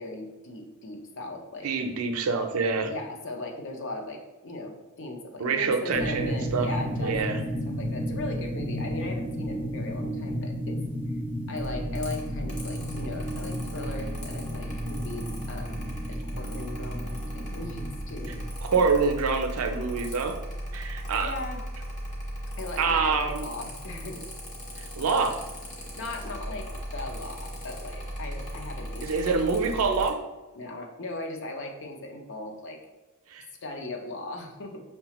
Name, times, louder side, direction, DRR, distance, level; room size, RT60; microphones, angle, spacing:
voice 1, 0.0-1.7 2.8-10.8 11.5-18.4 21.2-21.6 22.6-24.2 26.0-29.4 30.5-32.8 33.6-34.8, left 2 dB, 60° left, 2 dB, 0.6 m, -38 dB
voice 2, 1.6-2.9 5.4-6.7 7.0-7.4 18.6-20.4 20.7-21.3 22.8-23.5 24.8-25.4 29.0-30.2 33.3-33.5, right 4 dB, 80° right, 6 dB, 0.5 m, -26 dB
sound 1, 5.9-18.5, equal, 10° right, 0.4 m, -33 dB
Mechanical fan, 11.6-30.1, equal, 35° left, 1.0 m, -37 dB
5.6 x 2.2 x 2.9 m, 1.1 s
head